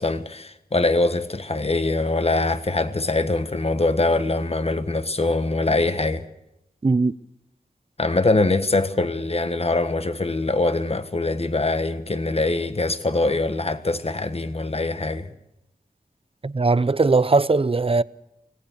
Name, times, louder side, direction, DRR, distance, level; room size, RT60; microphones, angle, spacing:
voice 1, 0.0-6.3 8.0-15.3, left 2 dB, 40° left, 1.5 m, -23 dB
voice 2, 6.8-7.1 16.4-18.0, right 3 dB, 35° right, 0.7 m, -19 dB
25.0 x 18.5 x 6.6 m
wide cardioid pair, 75°, 16 cm